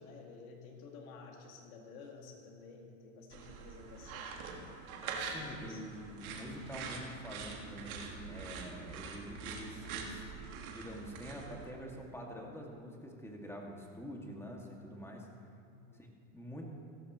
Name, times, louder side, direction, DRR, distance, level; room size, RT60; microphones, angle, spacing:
voice 1, 0.0-4.4 5.0-6.0 8.9-9.5 15.7-16.2, left 4 dB, 75° left, 1 dB, 2.3 m, -52 dB
sound 1, 3.3-11.7, right 5 dB, 80° right, 1.8 m, -44 dB
voice 2, 5.1-15.3 16.0-16.6, equal, 5° left, 0 dB, 2.2 m, -46 dB
16.0 x 14.0 x 3.1 m, 2.5 s
hypercardioid pair, 95°, 42 cm